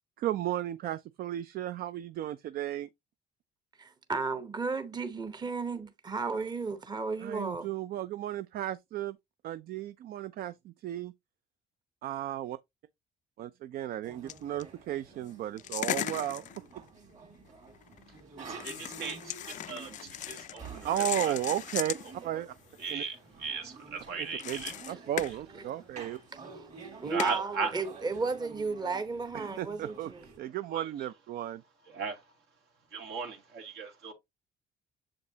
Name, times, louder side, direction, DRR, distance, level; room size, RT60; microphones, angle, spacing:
voice 1, 0.2-2.9 7.2-9.2 9.4-11.1 12.0-12.6 13.4-16.4 20.8-22.0 22.2-22.6 22.9-23.0 24.2-26.2 29.3-30.1 30.4-31.6, right 12 dB, 60° right, 0.5 m, -34 dB
voice 2, 3.8-7.7 24.9-25.0 26.3-26.6 27.0-30.2, right 4 dB, 25° right, 0.8 m, -34 dB
sound 1, 14.0-30.4, right 4 dB, 45° right, 2.6 m, -50 dB
sound 2, 14.3-14.6 15.6-16.9 17.7-18.2 18.6-22.1 22.5-23.1 24.3-25.4 26.1-26.2 27.2-27.4, left 12 dB, 50° left, 0.4 m, -37 dB
voice 3, 18.4-20.9 21.2-21.3 22.8-24.7 27.0-27.7 30.7-30.8 31.9-32.2 32.9-34.1, right 5 dB, 80° right, 2.4 m, -37 dB
7.0 x 5.1 x 2.7 m
cardioid pair, 110°, 17 cm